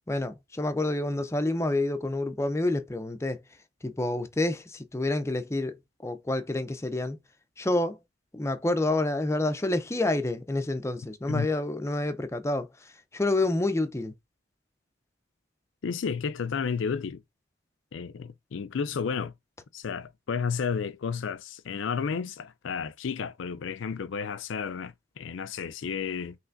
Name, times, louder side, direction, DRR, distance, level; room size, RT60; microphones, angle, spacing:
voice 1, 0.1-3.4 3.8-7.2 7.6-8.0 8.3-12.7 13.1-14.1, left 2 dB, 15° left, 0.5 m, -28 dB
voice 2, 15.8-17.2 17.9-19.3 19.7-26.3, left 6 dB, 75° left, 0.4 m, -32 dB
5.7 x 3.1 x 2.5 m
head